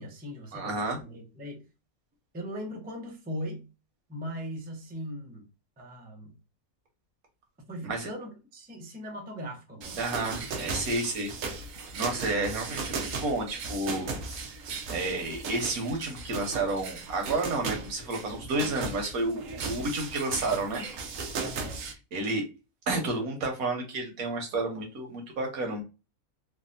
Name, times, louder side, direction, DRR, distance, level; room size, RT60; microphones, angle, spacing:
voice 1, 0.0-1.7 2.3-3.7 4.1-5.5 5.8-6.4 7.7-10.4 19.5-19.7 21.4-21.8, equal, 15° right, 0.4 m, -39 dB
voice 2, 0.5-1.0 7.8-8.1 10.0-11.3 12.0-14.1 14.9-20.8 22.1-22.4 22.9-25.8, right 2 dB, 85° right, 1.4 m, -30 dB
sound 1, 9.8-21.9, right 4 dB, 70° right, 1.0 m, -37 dB
3.3 x 2.3 x 2.5 m
omnidirectional pair, 1.5 m